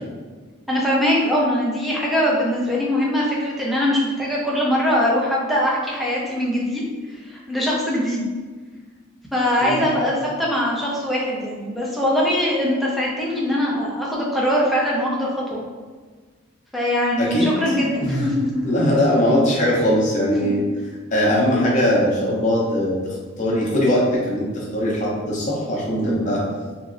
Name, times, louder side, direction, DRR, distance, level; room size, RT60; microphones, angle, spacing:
voice 1, 0.7-6.9 7.2-8.3 9.3-15.6 16.7-18.8 20.4-20.6 26.0-26.3, left 1 dB, ahead, -5 dB, 0.5 m, -22 dB
voice 2, 17.2-17.5 18.0-18.3 18.6-20.6 21.1-26.4, equal, 35° left, -5 dB, 0.7 m, -20 dB
3.0 x 2.6 x 2.5 m, 1.4 s
head